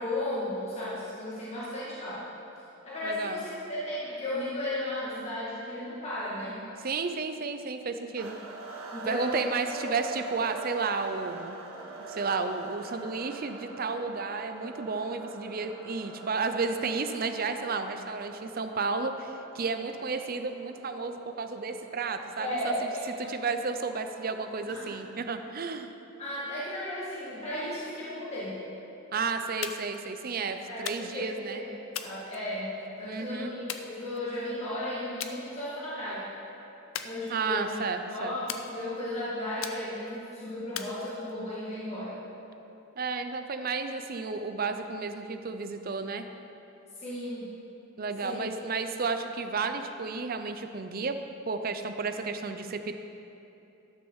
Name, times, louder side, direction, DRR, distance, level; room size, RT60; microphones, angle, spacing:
voice 1, 0.0-2.2 2.8-6.6 8.9-9.5 9.8-10.0 22.4-22.8 23.2-23.3 24.7-25.0 26.2-28.6 30.6-31.7 32.0-36.3 37.0-37.8 38.1-42.2 46.9-47.5 48.2-48.4, left 1 dB, 30° left, -9 dB, 2.0 m, -35 dB
voice 2, 3.0-3.4 6.8-8.4 9.0-11.6 12.1-22.7 23.3-25.9 29.1-31.6 33.0-33.5 37.3-38.3 43.0-46.2 48.0-51.2 51.5-52.9, right 4 dB, 45° right, 8 dB, 0.6 m, -32 dB
sound 1, 8.2-24.9, right 3 dB, 85° right, 1.4 m, -45 dB
sound 2, 29.6-30.0 30.9-31.3 31.9-32.9 33.7-34.5 35.2-35.4 35.8-36.2 36.9-37.7 38.5-39.1 39.6-40.2 40.8-41.6, left 8 dB, 75° left, 0.6 m, -40 dB
12.0 x 6.4 x 6.4 m, 2.9 s
head